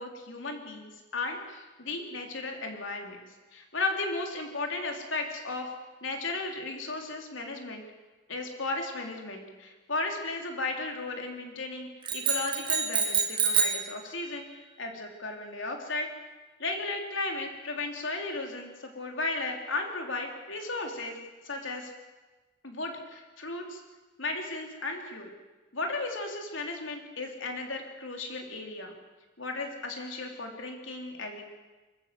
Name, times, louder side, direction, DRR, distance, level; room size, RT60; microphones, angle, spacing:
voice 1, 0.0-3.2 3.5-5.7 6.0-7.8 8.3-16.1 16.6-21.2 21.4-21.9 22.6-23.8 24.2-25.3 25.7-28.9 29.4-31.5, left 2 dB, 70° left, 2 dB, 3.4 m, -35 dB
sound 1, 12.1-13.9, right 6 dB, 25° right, 2.0 m, -27 dB
25.0 x 14.5 x 7.6 m, 1.2 s
head